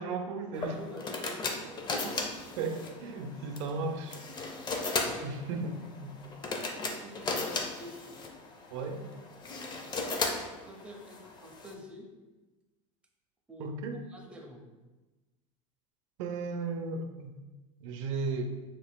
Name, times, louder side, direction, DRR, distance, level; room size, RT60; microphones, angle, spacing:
voice 1, 0.0-0.8 2.6-4.2 5.2-6.1 8.7-9.1 13.6-14.0 16.2-17.3 17.8-18.5, right 3 dB, 80° right, 5 dB, 0.5 m, -35 dB
sound 1, 0.5-11.7, left 3 dB, 30° left, 0.6 m, -36 dB
voice 2, 0.5-2.4 3.4-3.6 5.0-5.4 6.9-8.2 8.7-8.9 10.6-12.1 13.5-14.6, equal, 5° right, 0 dB, 0.7 m, -48 dB
5.0 x 3.7 x 2.2 m, 1.2 s
supercardioid pair, 105°, 16 cm